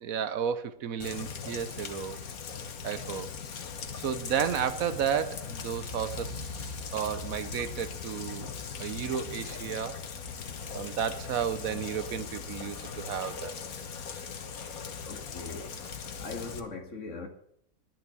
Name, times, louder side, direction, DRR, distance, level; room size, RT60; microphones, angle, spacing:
voice 1, 0.0-2.2 2.8-3.3 4.0-10.0 10.7-13.6, right 8 dB, 75° right, 1.3 m, -33 dB
Rain, 1.0-16.6, left 5 dB, 85° left, 1.6 m, -39 dB
voice 2, 15.0-15.7 16.2-17.3, left 3 dB, 60° left, 2.1 m, -40 dB
11.0 x 10.0 x 8.5 m
omnidirectional pair, 1.5 m